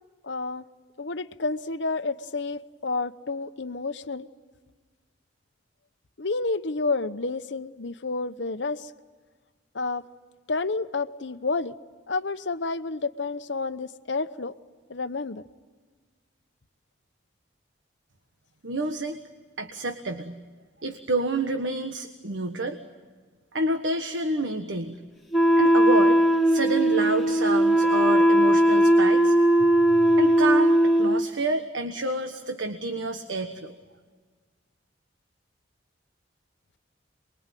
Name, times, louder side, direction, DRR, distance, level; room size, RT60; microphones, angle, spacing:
voice 1, 0.2-0.6 1.0-4.3 6.2-8.9 9.7-10.0 10.5-11.8 12.1-14.5 14.9-15.5, left 3 dB, 70° left, 11 dB, 0.9 m, -30 dB
voice 2, 18.6-19.2 19.6-20.4 20.8-22.8 23.5-24.9 25.6-29.3 29.6-33.7, right 2 dB, 80° right, 6 dB, 1.4 m, -29 dB
Wind instrument woodwind instrument, 25.3-31.2, right 1 dB, ahead, 2.3 m, -19 dB
28.0 x 22.0 x 9.2 m, 1.5 s
head